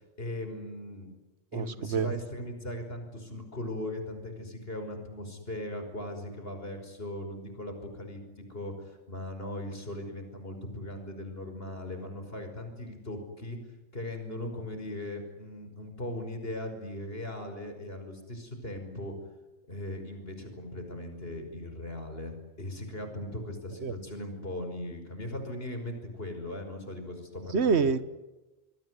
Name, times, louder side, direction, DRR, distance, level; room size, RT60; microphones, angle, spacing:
voice 1, 0.2-1.1 1.5-8.2 8.5-13.6 13.9-19.1 19.7-27.9, left 1 dB, 60° left, 6 dB, 5.8 m, -39 dB
voice 2, 1.5-2.1 23.8-23.9 27.5-28.0, right 5 dB, 70° right, 14 dB, 1.5 m, -26 dB
27.5 x 22.0 x 9.7 m, 1.1 s
omnidirectional pair, 1.2 m